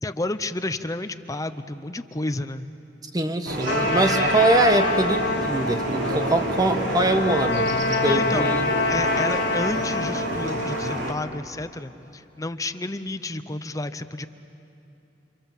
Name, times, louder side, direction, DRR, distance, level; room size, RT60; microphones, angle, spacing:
voice 1, 0.0-2.7 4.1-4.4 8.0-8.5 8.9-14.3, left 2 dB, 20° left, 11 dB, 0.7 m, -31 dB
voice 2, 3.1-8.7, right 2 dB, 20° right, 7 dB, 1.3 m, -23 dB
sound 1, 3.5-11.1, right 1 dB, 90° right, 3.2 m, -29 dB
Trumpet, 3.7-11.0, left 3 dB, 85° left, 1.6 m, -26 dB
29.0 x 27.5 x 7.4 m, 2.9 s
head